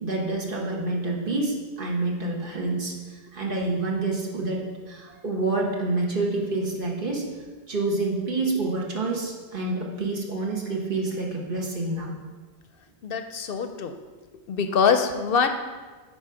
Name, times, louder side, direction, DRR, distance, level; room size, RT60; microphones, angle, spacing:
voice 1, 0.0-12.1, right 2 dB, 55° right, -2 dB, 1.4 m, -28 dB
voice 2, 13.0-13.9 14.5-15.5, left 6 dB, 65° left, 8 dB, 0.7 m, -23 dB
9.7 x 4.1 x 4.8 m, 1.3 s
omnidirectional pair, 1.1 m